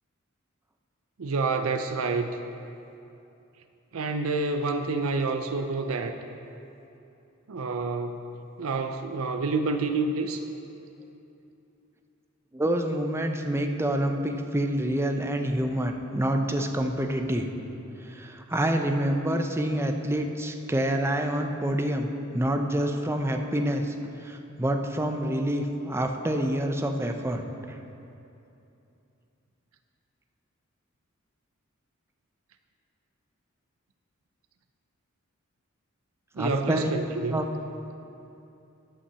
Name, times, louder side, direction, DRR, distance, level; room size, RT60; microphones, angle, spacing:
voice 1, 1.2-2.4 3.9-6.1 7.5-8.2 8.6-10.4 36.4-37.4, right 3 dB, 80° right, 7 dB, 0.5 m, -28 dB
voice 2, 12.5-17.5 18.0-22.1 22.3-23.9 24.2-27.4 36.4-36.9 37.3-37.5, right 1 dB, 10° right, 4 dB, 0.6 m, -27 dB
11.5 x 5.6 x 6.8 m, 2.8 s
head